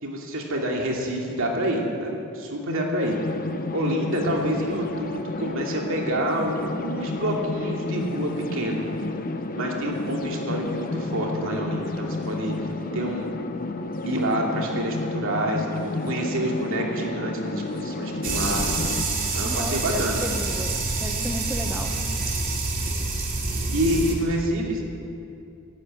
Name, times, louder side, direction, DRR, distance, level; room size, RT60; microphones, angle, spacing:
voice 1, 0.0-3.2 3.7-8.9 9.5-12.5 12.9-13.3 14.0-18.7 19.3-20.2 23.7-24.8, right 1 dB, 60° right, -1 dB, 2.7 m, -27 dB
sound 1, 3.0-19.0, left 2 dB, 40° left, 0.8 m, -31 dB
sound 2, 18.2-24.1, right 3 dB, 40° right, 2.6 m, -27 dB
voice 2, 19.4-21.9, right 1 dB, 10° right, 2 dB, 0.8 m, -34 dB
12.0 x 12.0 x 9.0 m, 2.6 s
head